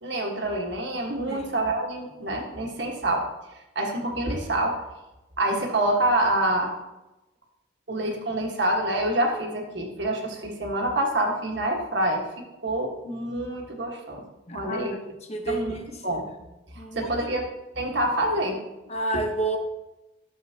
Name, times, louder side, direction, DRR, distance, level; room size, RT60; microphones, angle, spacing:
voice 1, 0.0-3.3 3.7-4.8 5.4-6.7 7.9-14.2 14.5-15.1 15.5-15.7 16.0-16.3 16.7-17.5 17.7-18.6, right 1 dB, 60° right, 1 dB, 1.6 m, -27 dB
voice 2, 14.5-15.0 15.3-15.8 16.1-16.2 16.8-17.1 18.9-19.6, right 2 dB, 35° left, 4 dB, 1.0 m, -30 dB
12.5 x 7.2 x 2.9 m, 0.98 s
head